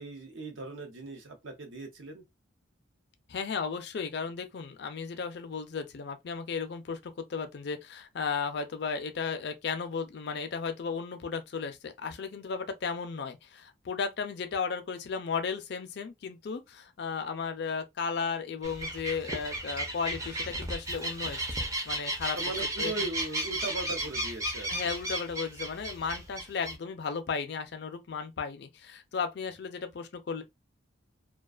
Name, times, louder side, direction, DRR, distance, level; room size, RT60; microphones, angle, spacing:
voice 1, 0.0-2.2 22.3-24.7, right 2 dB, 70° right, 0.7 m, -38 dB
voice 2, 3.3-22.4 22.8-22.9 24.7-30.4, left 5 dB, 55° left, 0.4 m, -35 dB
sound 1, 18.6-26.7, right 1 dB, 15° right, 0.4 m, -34 dB
2.4 x 2.2 x 2.3 m
head